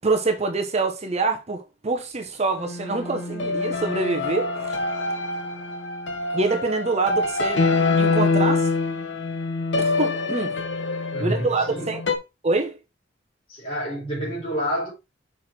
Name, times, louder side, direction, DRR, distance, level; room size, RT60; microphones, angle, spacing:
voice 1, 0.0-4.8 6.3-7.6 8.0-8.7 9.8-10.6 11.2-12.0 12.4-12.8, right 3 dB, 35° right, 0.8 m, -25 dB
sound 1, 2.6-12.1, left 3 dB, 70° left, 1.0 m, -25 dB
voice 2, 11.1-12.0 13.5-14.9, equal, 30° left, 4.0 m, -28 dB
6.1 x 4.7 x 4.2 m
head